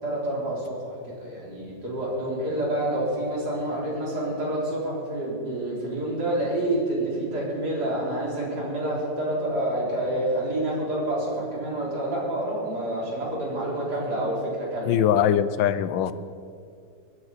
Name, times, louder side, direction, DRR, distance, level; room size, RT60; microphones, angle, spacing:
voice 1, 0.0-15.0, right 1 dB, 60° right, -5 dB, 4.2 m, -28 dB
voice 2, 14.9-16.1, left 9 dB, 90° left, 13 dB, 1.4 m, -22 dB
20.5 x 11.5 x 4.1 m, 2.4 s
omnidirectional pair, 2.0 m